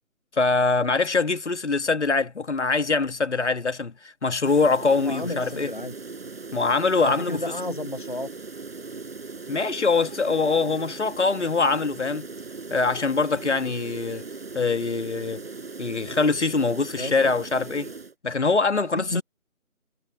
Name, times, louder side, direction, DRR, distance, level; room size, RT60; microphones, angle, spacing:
voice 1, 0.3-5.7 6.5-7.4 9.5-12.3 12.7-14.2 14.5-15.4 15.8-17.9 18.2-19.2, left 4 dB, 55° left, 1.5 m, -23 dB
sound 1, 4.4-18.1, right 4 dB, 45° right, 6.4 m, -39 dB
voice 2, 5.0-5.9 7.0-8.3 17.0-17.3 18.9-19.2, left 2 dB, 35° left, 0.8 m, -31 dB
figure-of-eight pair, 165°, 43 cm